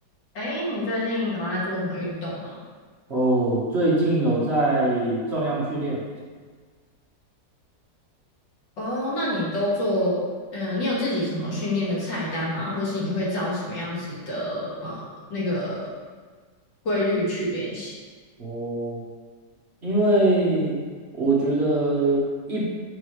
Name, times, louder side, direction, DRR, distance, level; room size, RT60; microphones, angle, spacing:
voice 1, 0.3-2.6 8.8-10.2 10.5-15.9 16.8-17.9, left 1 dB, 80° left, -6 dB, 2.7 m, -27 dB
voice 2, 3.1-6.0 18.4-19.0 19.8-20.8 21.1-22.6, right 2 dB, 40° right, -6 dB, 1.6 m, -22 dB
8.2 x 5.4 x 3.3 m, 1.5 s
omnidirectional pair, 1.9 m